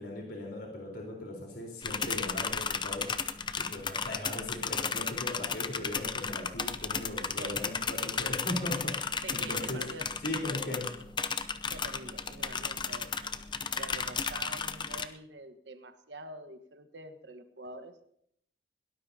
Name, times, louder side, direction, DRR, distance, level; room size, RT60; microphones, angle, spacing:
voice 1, 0.0-9.8 10.2-10.9, left 1 dB, 65° left, -1 dB, 4.1 m, -38 dB
sound 1, 1.8-15.1, left 5 dB, 25° left, 0.7 m, -34 dB
voice 2, 9.2-10.1 11.7-18.0, right 2 dB, 70° right, 8 dB, 1.3 m, -46 dB
21.5 x 18.0 x 2.8 m, 0.68 s
head